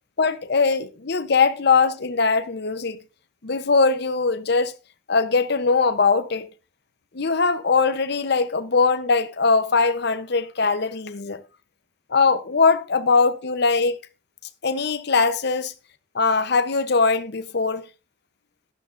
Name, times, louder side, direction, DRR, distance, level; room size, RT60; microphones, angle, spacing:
voice 1, 0.2-3.0 3.4-4.7 5.1-6.5 7.1-11.4 12.1-14.0 14.6-15.7 16.1-17.8, left 4 dB, 55° left, 0.7 m, -21 dB
12.5 x 11.0 x 2.5 m
head